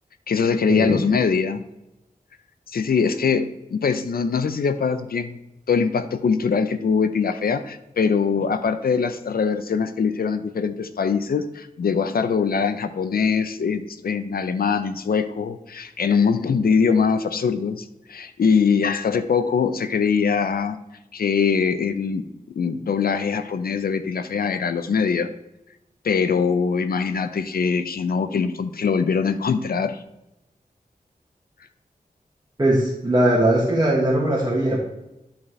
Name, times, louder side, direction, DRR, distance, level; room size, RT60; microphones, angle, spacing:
voice 1, 0.3-1.6 2.7-5.4 5.7-20.8 21.1-22.2 22.5-25.3 26.0-30.0, left 5 dB, 85° left, 10 dB, 0.5 m, -22 dB
voice 2, 32.6-34.8, right 1 dB, 25° right, -6 dB, 1.5 m, -20 dB
11.0 x 4.2 x 3.2 m, 0.92 s
wide cardioid pair, 100°, 15 cm